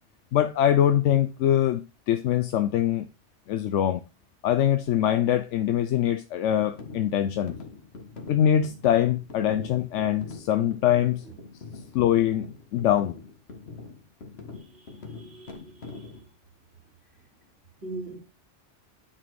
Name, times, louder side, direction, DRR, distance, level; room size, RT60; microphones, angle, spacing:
voice 1, 0.3-3.0 3.5-4.0 4.4-7.5 8.3-11.2 11.9-12.5 12.7-13.2, left 10 dB, 80° left, 0.9 m, -23 dB
sound 1, 6.6-16.2, left 4 dB, 60° left, 1.6 m, -43 dB
voice 2, 14.5-16.3 17.8-18.2, right 2 dB, 60° right, 2.9 m, -42 dB
10.0 x 4.1 x 4.7 m
omnidirectional pair, 1.2 m